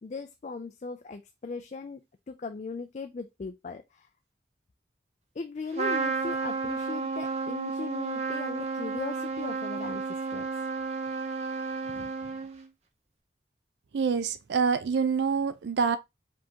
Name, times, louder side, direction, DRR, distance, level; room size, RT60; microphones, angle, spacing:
voice 1, 0.0-2.0 2.3-4.1 5.4-10.5 11.9-12.1, left 4 dB, 40° left, 0.4 m, -38 dB
Trumpet, 5.7-12.7, right 4 dB, 35° right, 0.7 m, -32 dB
voice 2, 13.9-16.0, right 5 dB, 75° right, 0.4 m, -26 dB
5.1 x 3.6 x 2.8 m
head